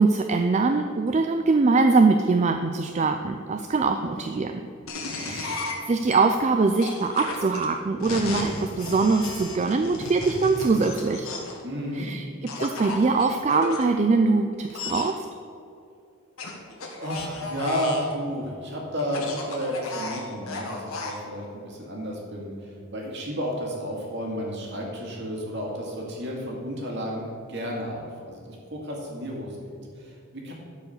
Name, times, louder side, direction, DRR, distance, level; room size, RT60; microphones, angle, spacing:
voice 1, 0.0-4.5 5.1-11.3 11.9-12.2 12.6-15.1, right 3 dB, 30° right, 5 dB, 0.3 m, -22 dB
voice 2, 4.0-4.4 5.1-5.4 11.6-12.1 17.0-30.5, equal, 55° right, -1 dB, 2.1 m, -32 dB
sound 1, 4.9-6.2 6.8-11.6 12.5-13.8 14.7-15.1 16.4-18.1 19.0-21.2, left 3 dB, 75° left, 1.5 m, -34 dB
12.0 x 4.8 x 6.6 m, 2.5 s
head